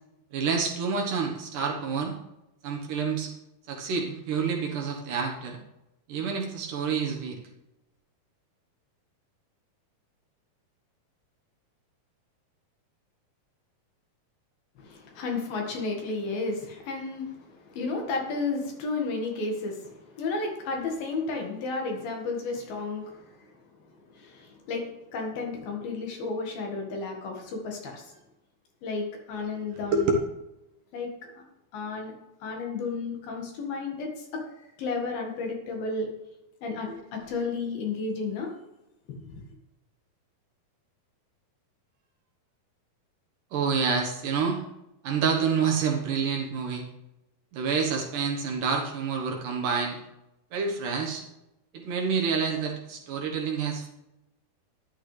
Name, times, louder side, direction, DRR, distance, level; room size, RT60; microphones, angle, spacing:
voice 1, 0.3-2.2 2.6-3.3 3.7-5.6 6.1-7.4 29.9-30.1 36.9-37.0 43.5-44.6 45.0-46.8 47.5-50.0 50.5-51.2 51.7-53.9, right 5 dB, 65° right, 0 dB, 2.5 m, -28 dB
voice 2, 14.8-23.5 24.1-28.1 28.8-30.1 30.9-31.4 31.7-32.1 32.4-36.1 36.6-38.5 39.1-39.4, left 3 dB, 70° left, 1 dB, 3.4 m, -33 dB
13.0 x 11.0 x 3.3 m, 0.93 s
omnidirectional pair, 4.5 m